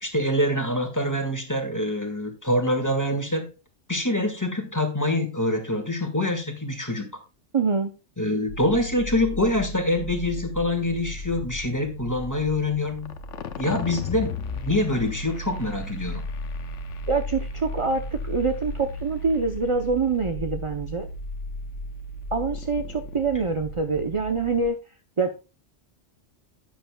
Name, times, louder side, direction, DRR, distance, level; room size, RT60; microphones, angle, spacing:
voice 1, 0.0-3.5 3.9-7.1 8.2-13.1 13.6-16.2, left 1 dB, 15° left, 6 dB, 1.6 m, -25 dB
voice 2, 7.5-7.9 17.1-21.1 22.3-24.8 25.2-25.4, right 4 dB, 35° right, 7 dB, 0.6 m, -25 dB
sound 1, 8.5-24.7, left 1 dB, 80° left, 1.1 m, -35 dB
11.0 x 9.1 x 2.2 m, 0.31 s
omnidirectional pair, 1.2 m